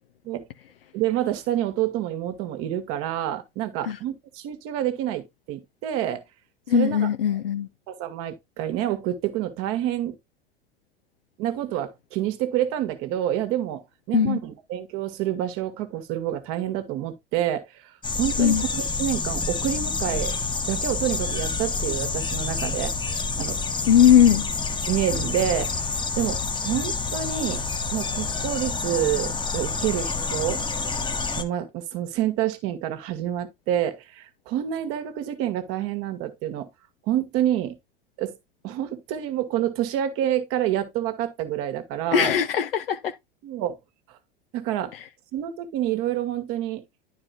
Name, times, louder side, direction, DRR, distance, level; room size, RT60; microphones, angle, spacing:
voice 1, 0.9-6.2 6.7-7.1 7.9-10.2 11.4-13.8 14.1-17.8 18.2-20.4 20.7-22.9 23.4-23.6 24.9-25.7 26.2-27.6 27.9-30.6 31.4-36.7 37.1-37.8 38.2-38.3 38.6-42.3 43.4-43.8 44.5-44.9 45.3-46.8, right 11 dB, 50° right, 1.8 m, -28 dB
voice 2, 6.7-7.7 14.1-14.4 18.4-18.6 23.9-24.4 42.1-43.1, left 9 dB, 75° left, 0.7 m, -19 dB
sound 1, 18.0-31.4, left 4 dB, 15° left, 1.2 m, -28 dB
11.5 x 4.8 x 2.7 m
figure-of-eight pair, 75°, 29 cm